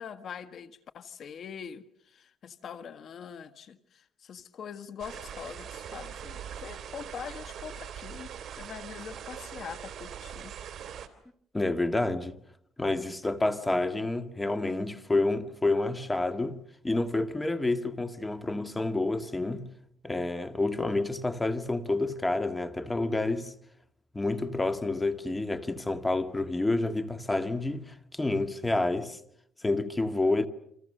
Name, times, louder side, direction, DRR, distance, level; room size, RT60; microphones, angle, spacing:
voice 1, 0.0-8.3 8.6-10.5, left 7 dB, 50° left, 1.6 m, -43 dB
sound 1, 5.0-11.1, right 9 dB, 55° right, 3.2 m, -42 dB
voice 2, 11.5-12.4 12.8-16.6 16.8-19.6 20.0-23.5 24.1-29.2 29.6-30.5, left 2 dB, 10° left, 1.9 m, -29 dB
29.5 x 26.0 x 6.7 m
cardioid pair, 115°, 0 cm